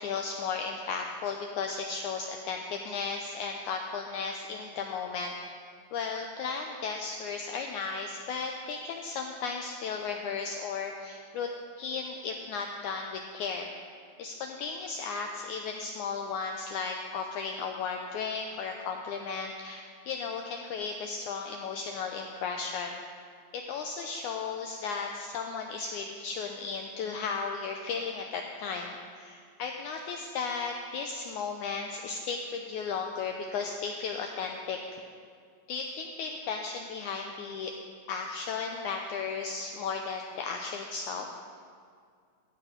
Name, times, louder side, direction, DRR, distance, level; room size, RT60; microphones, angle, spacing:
voice 1, 0.0-5.3 5.9-11.5 11.8-13.7 14.2-23.0 23.5-35.0 35.7-37.7 38.1-41.3, left 5 dB, 85° left, 3 dB, 1.7 m, -35 dB
15.0 x 8.5 x 5.1 m, 2.1 s
omnidirectional pair, 4.1 m